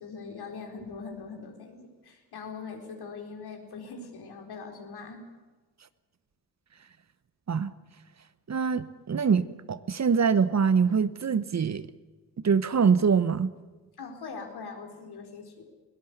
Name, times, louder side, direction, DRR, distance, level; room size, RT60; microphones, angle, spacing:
voice 1, 0.0-5.2 14.0-15.6, left 5 dB, 60° left, 4.4 m, -41 dB
voice 2, 8.5-11.9 12.4-13.5, right 6 dB, 40° right, 1.2 m, -24 dB
22.5 x 17.5 x 8.1 m
hypercardioid pair, 45°, 43 cm